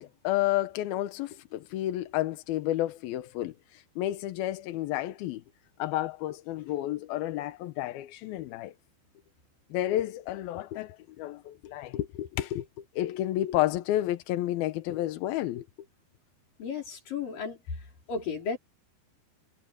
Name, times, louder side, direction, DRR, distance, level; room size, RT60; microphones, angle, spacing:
voice 1, 0.0-5.4 5.8-8.7 9.7-15.6, left 14 dB, 75° left, 2.5 m, -31 dB
voice 2, 16.6-18.6, left 5 dB, 55° left, 6.4 m, -34 dB
omnidirectional pair, 4.9 m